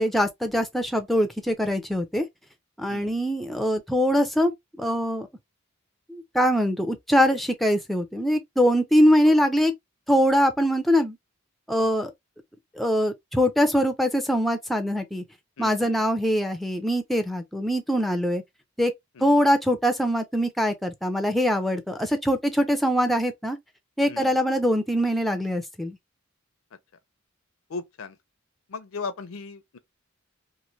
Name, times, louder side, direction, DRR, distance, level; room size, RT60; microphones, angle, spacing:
voice 1, 0.0-2.3 2.8-4.5 4.8-5.3 6.1-9.7 10.1-11.2 11.7-12.1 12.8-15.2 15.6-18.4 18.8-18.9 19.2-23.6 24.0-26.0, equal, ahead, 0.4 m, -23 dB
voice 2, 15.6-16.0 19.2-19.4 24.1-24.4 27.7-28.2 28.7-29.8, left 4 dB, 75° left, 0.5 m, -37 dB
3.0 x 2.4 x 2.6 m
head